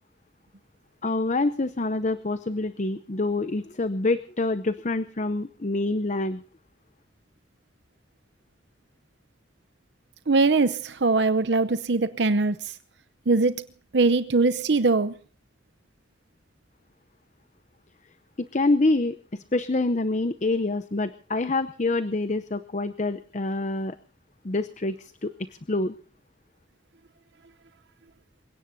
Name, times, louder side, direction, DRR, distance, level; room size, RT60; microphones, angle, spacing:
voice 1, 1.0-6.4 18.4-24.0 24.4-26.0, left 2 dB, 40° left, 0.7 m, -26 dB
voice 2, 10.3-12.6 13.3-13.6 13.9-15.1, right 3 dB, 65° right, 0.8 m, -21 dB
28.5 x 17.5 x 2.8 m
head